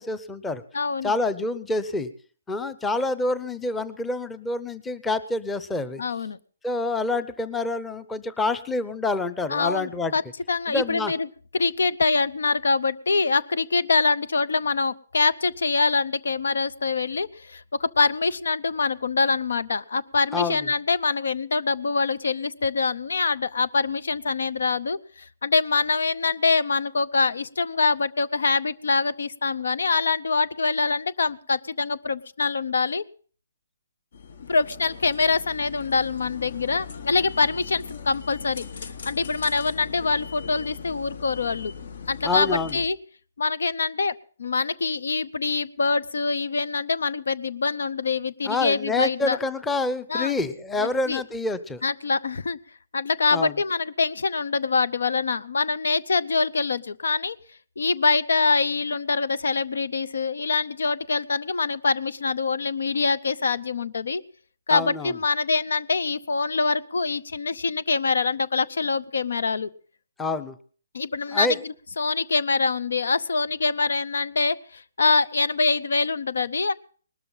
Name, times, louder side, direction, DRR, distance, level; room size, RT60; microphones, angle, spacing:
voice 1, 0.0-0.6 1.0-2.1 2.5-6.0 6.6-10.1 10.7-11.1 20.3-20.7 42.2-42.8 48.4-51.8 53.3-53.5 64.7-65.1 70.2-70.6 71.3-71.6, left 2 dB, 10° left, 14 dB, 0.7 m, -27 dB
voice 2, 0.7-1.1 6.0-6.4 9.5-10.2 10.5-11.3 11.5-33.0 34.5-41.7 42.1-43.0 43.4-49.4 50.1-50.3 50.8-51.2 51.8-52.6 52.9-57.4 57.8-64.2 64.7-69.7 70.9-76.7, left 4 dB, 80° left, 18 dB, 0.7 m, -24 dB
sound 1, 34.1-42.9, left 6 dB, 60° left, 1.2 m, -39 dB
19.5 x 13.0 x 3.9 m, 0.43 s
hypercardioid pair, 155°, 0 cm